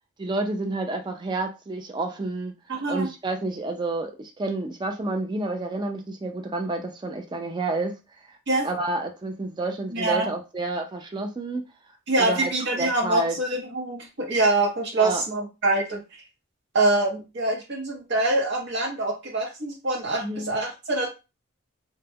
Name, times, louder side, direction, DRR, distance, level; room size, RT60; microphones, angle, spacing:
voice 1, 0.2-2.5 2.9-7.9 8.6-11.6 12.2-12.5 12.8-13.4 15.0-15.2 20.2-20.5, right 2 dB, 20° right, 4 dB, 0.3 m, -29 dB
voice 2, 2.7-3.1 8.5-8.7 9.9-10.3 12.1-16.2 16.7-21.1, right 2 dB, 55° right, 1 dB, 0.8 m, -25 dB
2.2 x 2.1 x 3.4 m, 0.28 s
head